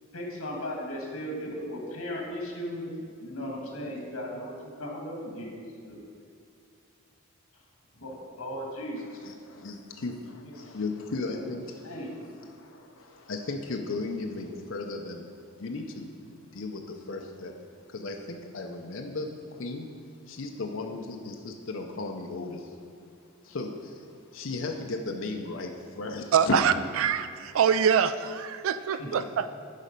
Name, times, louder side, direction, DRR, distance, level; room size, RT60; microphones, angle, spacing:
voice 1, 0.1-2.9 3.2-5.5 5.8-6.0 7.9-9.2 10.4-10.5 11.3-11.5 11.8-12.2 29.0-29.1, equal, 85° left, 0 dB, 1.7 m, -36 dB
voice 2, 9.2-11.9 12.2-15.3 15.6-16.1 16.5-17.5 17.9-19.9 20.3-22.7 23.4-24.1 24.3-26.6, left 3 dB, 65° left, 3 dB, 0.6 m, -36 dB
voice 3, 26.3-29.5, right 7 dB, 70° right, 12 dB, 0.3 m, -24 dB
10.5 x 4.2 x 5.2 m, 2.3 s
head